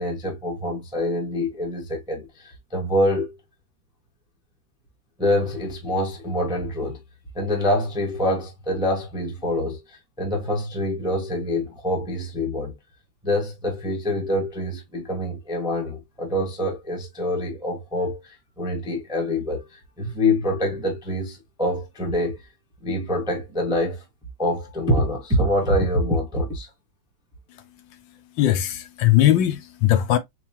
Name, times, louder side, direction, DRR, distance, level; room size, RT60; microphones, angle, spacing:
voice 1, 0.0-3.3 5.2-7.0 7.3-12.7 13.2-22.4 22.8-24.0 24.4-26.7, left 1 dB, 5° right, 0.6 m, -25 dB
voice 2, 28.3-30.2, left 13 dB, 75° left, 1.3 m, -20 dB
4.5 x 2.5 x 2.8 m
omnidirectional pair, 2.1 m